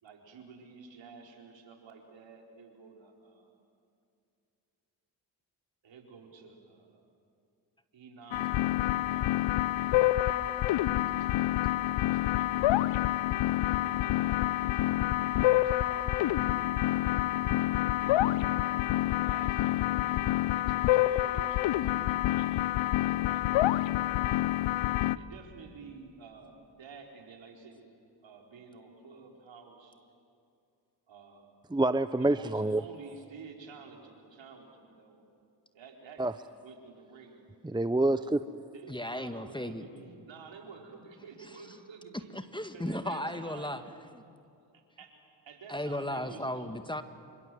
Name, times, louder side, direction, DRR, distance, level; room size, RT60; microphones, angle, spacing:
voice 1, 0.0-3.5 5.8-7.1 7.9-8.6 9.1-9.7 11.2-11.3 12.0-12.8 13.6-15.2 15.4-16.8 17.9-18.4 18.9-22.5 22.8-23.5 25.1-27.9 28.2-30.0 31.1-31.5 32.2-35.2 35.7-36.2 36.6-37.5 38.7-42.3 42.7-43.7 44.7-45.1 45.4-46.7, right 5 dB, 65° right, 2 dB, 4.7 m, -51 dB
sound 1, 8.3-25.2, left 15 dB, 65° left, 0.8 m, -27 dB
voice 2, 31.7-32.8 36.2-36.3 37.6-38.4, right 2 dB, 10° right, 13 dB, 0.8 m, -27 dB
voice 3, 38.9-39.8 42.3-44.2 45.7-47.0, left 1 dB, 10° left, 9 dB, 1.8 m, -35 dB
27.0 x 25.0 x 7.8 m, 2.5 s
hypercardioid pair, 45°, 48 cm